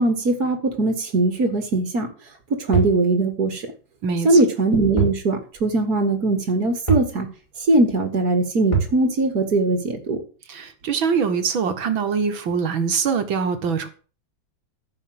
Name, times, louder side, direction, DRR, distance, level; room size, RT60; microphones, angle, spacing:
voice 1, 0.0-2.1 2.6-3.6 4.2-7.3 7.7-10.2, right 2 dB, 50° right, 5 dB, 2.3 m, -20 dB
sound 1, 2.7-3.0 5.0-5.2 5.6-5.7 6.9-7.2 8.7-9.0, right 6 dB, 15° left, 5.0 m, -22 dB
voice 2, 4.0-4.4 10.5-13.9, right 6 dB, 85° right, 8 dB, 2.4 m, -23 dB
14.5 x 5.8 x 7.8 m, 0.38 s
omnidirectional pair, 2.1 m